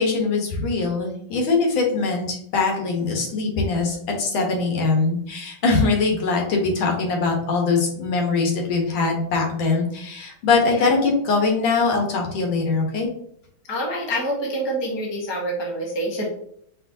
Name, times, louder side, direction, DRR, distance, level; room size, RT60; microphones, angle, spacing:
voice 1, 0.0-13.1, left 4 dB, 85° left, 1 dB, 1.8 m, -22 dB
voice 2, 13.7-16.2, right 1 dB, 20° left, -2 dB, 0.7 m, -27 dB
4.5 x 3.7 x 2.6 m, 0.69 s
omnidirectional pair, 2.2 m